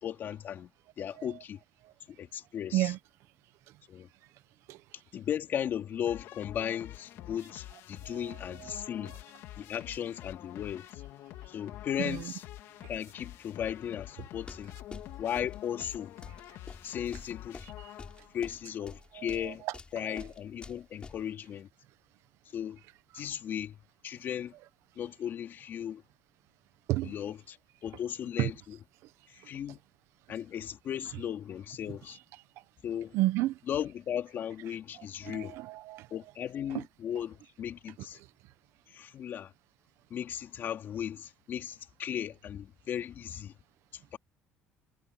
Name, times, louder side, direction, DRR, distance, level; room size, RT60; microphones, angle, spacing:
voice 1, 0.0-0.7 1.0-1.6 2.1-2.9 3.9-4.1 5.1-9.1 9.6-11.0 11.5-12.5 12.9-14.8 15.2-16.2 16.8-17.7 18.3-19.6 19.9-21.7 22.5-22.8 23.1-23.8 24.0-24.5 24.9-26.0 27.0-28.8 29.3-29.8 30.3-32.2 32.8-33.2 33.7-35.6 36.1-38.2 38.9-39.5 40.1-43.5 43.9-44.2, left 9 dB, 45° left, 3.2 m, -36 dB
sound 1, 6.1-18.5, left 14 dB, 70° left, 2.8 m, -47 dB
sound 2, 14.3-21.2, left 4 dB, 20° left, 6.0 m, -47 dB
voice 2, 33.1-33.6 35.2-36.1, right 16 dB, 75° right, 1.2 m, -29 dB
cardioid pair, 130°, 5 cm